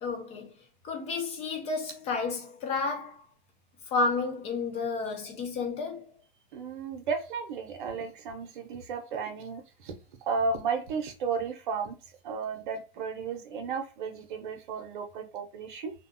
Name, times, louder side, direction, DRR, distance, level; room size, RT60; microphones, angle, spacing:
voice 1, 0.0-0.5 0.8-3.2 3.9-6.1, left 4 dB, 20° left, 0.4 m, -31 dB
voice 2, 6.5-9.9 10.3-12.0 12.2-15.9, right 5 dB, 55° right, 0.7 m, -33 dB
2.7 x 2.1 x 2.5 m
hypercardioid pair, 115°, 30 cm